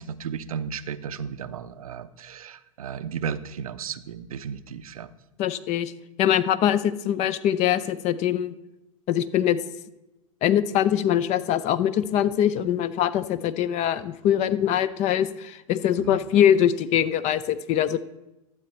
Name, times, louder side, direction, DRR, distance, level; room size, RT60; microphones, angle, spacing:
voice 1, 0.0-5.1 16.0-16.2, right 7 dB, 85° right, 13 dB, 0.5 m, -34 dB
voice 2, 5.4-5.9 6.2-8.5 9.1-9.6 10.4-18.0, left 10 dB, 40° left, 16 dB, 0.5 m, -23 dB
12.0 x 7.6 x 4.4 m, 0.97 s
hypercardioid pair, 100°, 18 cm